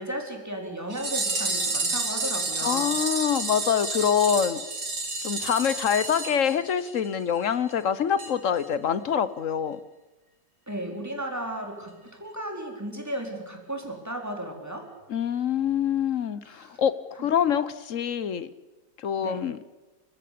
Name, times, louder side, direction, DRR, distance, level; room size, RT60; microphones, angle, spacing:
voice 1, 0.0-3.0 10.7-14.9 16.4-16.8 19.2-19.4, right 1 dB, 10° right, 2 dB, 4.1 m, -35 dB
sound 1, 0.9-7.1 7.4-7.5 7.7-7.8 8.2-8.3 8.6-8.7, right 3 dB, 75° right, 4.3 m, -30 dB
voice 2, 2.6-4.6 5.2-9.8 15.1-18.5 19.0-19.6, left 8 dB, 55° left, 16 dB, 1.2 m, -25 dB
29.5 x 15.5 x 8.6 m, 1.1 s
omnidirectional pair, 1.9 m